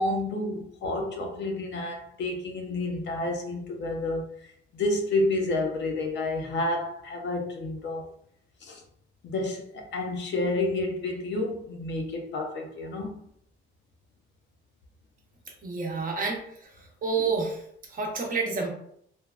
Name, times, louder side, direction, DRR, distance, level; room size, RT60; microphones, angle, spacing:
voice 1, 0.0-8.1 8.6-8.8 9.2-13.1, left 2 dB, 55° left, 0.6 m, -30 dB
voice 2, 15.6-16.4 17.0-17.6 17.9-18.7, right 4 dB, 40° right, 0.8 m, -28 dB
3.3 x 2.2 x 2.3 m
cardioid pair, 120°, 21 cm